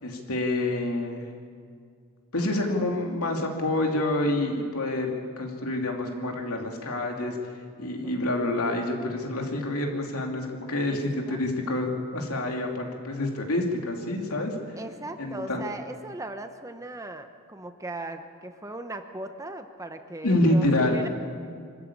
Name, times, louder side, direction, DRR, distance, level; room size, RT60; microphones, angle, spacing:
voice 1, 0.0-1.3 2.3-7.5 7.8-14.5 15.2-15.6 20.2-21.0, left 1 dB, 80° left, 1 dB, 2.9 m, -27 dB
voice 2, 14.8-21.1, right 2 dB, 15° right, 7 dB, 0.9 m, -38 dB
25.0 x 13.0 x 8.7 m, 2.2 s
head